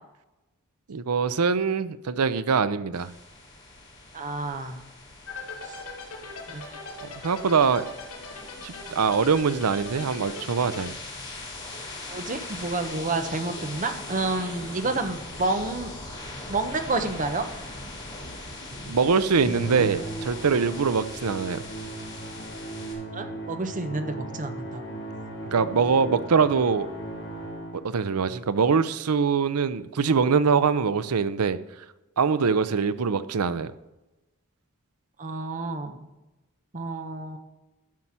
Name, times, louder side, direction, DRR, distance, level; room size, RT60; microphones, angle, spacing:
voice 1, 0.9-3.1 7.2-7.8 8.6-10.9 18.8-21.6 25.5-26.9 27.7-31.6 32.2-33.7, right 5 dB, 85° right, 15 dB, 0.6 m, -23 dB
sound 1, 2.9-22.9, left 2 dB, 20° left, 3.4 m, -41 dB
voice 2, 4.1-4.8 5.7-5.8 6.5-6.7 12.1-15.9 16.5-17.5 23.1-24.8 35.2-36.1 36.7-37.4, right 3 dB, 35° right, 8 dB, 1.0 m, -29 dB
sound 2, 5.3-10.9, left 4 dB, 85° left, 2.9 m, -39 dB
Musical instrument, 19.4-28.0, right 1 dB, 50° left, 4.3 m, -36 dB
12.0 x 5.6 x 7.4 m, 1.0 s
head